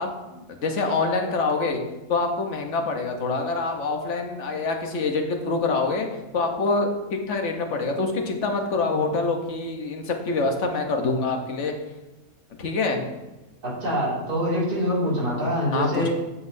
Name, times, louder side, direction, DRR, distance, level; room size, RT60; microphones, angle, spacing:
voice 1, 0.0-1.8 2.1-6.1 6.3-11.7 12.6-13.1 15.7-16.1, left 3 dB, 50° left, 3 dB, 1.2 m, -25 dB
voice 2, 13.6-16.1, equal, 80° right, -7 dB, 3.1 m, -25 dB
8.3 x 7.5 x 2.7 m, 1.1 s
omnidirectional pair, 1.7 m